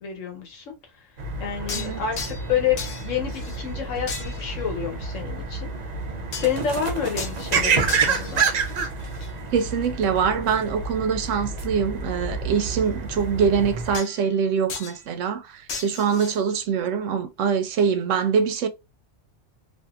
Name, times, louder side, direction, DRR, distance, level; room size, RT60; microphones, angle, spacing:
voice 1, 0.0-0.6 1.4-5.6 6.3-8.5, left 8 dB, 85° left, 1.2 m, -28 dB
sound 1, 1.2-14.0, right 4 dB, 60° right, 0.4 m, -29 dB
sound 2, 1.7-2.5 2.8-3.7 4.1-4.6 6.3-6.6 7.2-7.4 7.9-9.3 13.9-14.4 14.7-15.0 15.7-16.4, left 5 dB, 65° left, 0.9 m, -36 dB
voice 2, 9.5-18.7, right 6 dB, 80° right, 0.9 m, -24 dB
2.7 x 2.5 x 2.3 m
omnidirectional pair, 1.3 m